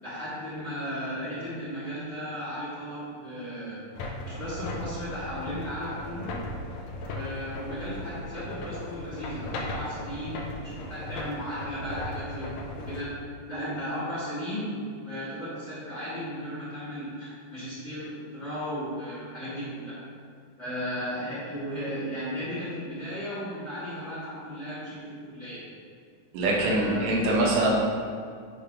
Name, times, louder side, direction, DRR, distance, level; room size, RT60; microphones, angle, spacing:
voice 1, 0.0-3.8 4.2-6.3 7.1-13.1 13.5-20.0 20.6-25.6 26.4-27.2, equal, 35° left, -11 dB, 1.2 m, -35 dB
sound 1, 3.9-13.1, left 2 dB, 80° left, 1.7 m, -37 dB
voice 2, 26.3-27.7, right 2 dB, 70° right, -3 dB, 2.2 m, -23 dB
7.7 x 2.7 x 5.0 m, 2.1 s
omnidirectional pair, 3.7 m